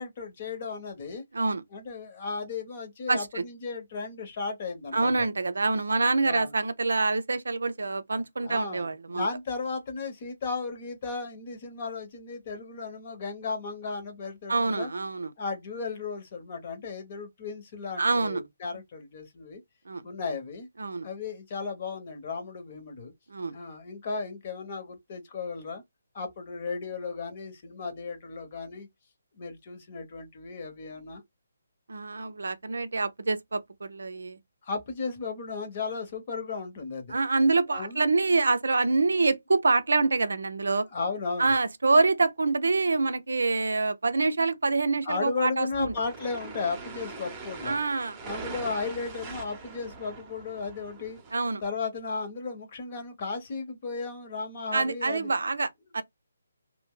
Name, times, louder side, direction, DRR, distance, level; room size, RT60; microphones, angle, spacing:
voice 1, 0.0-1.2 1.7-5.3 6.2-6.5 8.4-14.9 15.4-19.6 20.0-20.7 21.0-23.1 23.5-25.8 26.1-28.9 29.4-31.2 34.6-37.2 37.7-38.0 40.9-41.6 45.0-47.8 48.2-51.2 51.6-55.3, left 4 dB, 40° left, 1.0 m, -35 dB
voice 2, 3.1-3.4 4.9-9.3 14.5-15.3 18.0-18.4 19.9-20.0 20.8-21.1 23.3-23.6 31.9-34.4 37.1-40.9 41.4-45.9 47.6-48.2 51.3-51.6 54.7-56.0, right 3 dB, 70° right, 0.5 m, -26 dB
sound 1, 45.7-51.3, right 4 dB, 20° right, 0.8 m, -42 dB
2.7 x 2.2 x 3.7 m
figure-of-eight pair, 145°, 0 cm